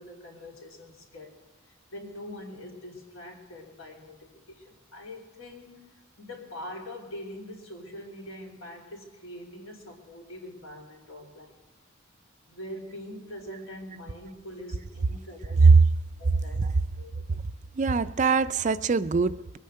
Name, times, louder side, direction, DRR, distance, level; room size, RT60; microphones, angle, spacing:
voice 1, 0.0-1.3 1.9-5.9 6.2-11.6 12.5-15.7 16.2-17.2, left 1 dB, 75° left, 0 dB, 3.3 m, -43 dB
voice 2, 17.8-19.6, right 4 dB, 35° right, 13 dB, 0.4 m, -20 dB
22.0 x 9.3 x 6.5 m, 1.3 s
head